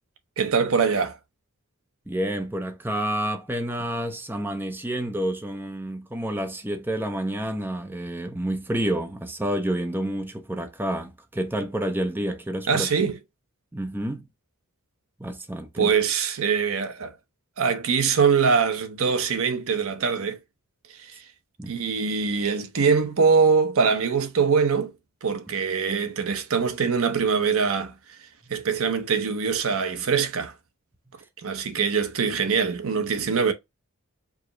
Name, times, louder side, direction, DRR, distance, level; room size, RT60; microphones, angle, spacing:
voice 1, 0.4-1.2 12.7-13.2 15.8-17.1 17.6-20.4 21.0-21.2 21.7-24.9 25.2-27.9 28.5-30.5 31.4-33.5, right 5 dB, 65° right, 0.7 m, -23 dB
voice 2, 2.1-12.9 13.7-14.3 15.2-15.9 21.6-21.7, right 1 dB, 10° right, 0.5 m, -29 dB
4.8 x 2.0 x 3.8 m
head